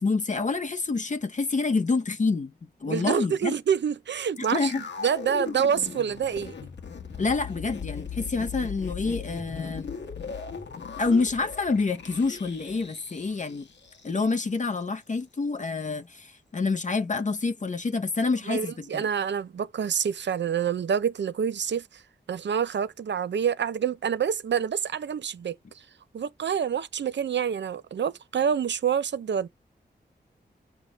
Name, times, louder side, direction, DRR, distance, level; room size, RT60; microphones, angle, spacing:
voice 1, 0.0-3.5 4.5-4.8 7.2-9.9 11.0-13.7 14.0-19.1, left 4 dB, 45° left, 0.7 m, -27 dB
voice 2, 2.9-6.5 18.5-22.0 22.3-25.6 26.1-29.5, right 7 dB, 80° right, 0.6 m, -27 dB
sound 1, 4.4-14.5 14.8-14.9, left 6 dB, 80° left, 1.3 m, -38 dB
8.1 x 3.5 x 5.0 m
wide cardioid pair, 95°, 18 cm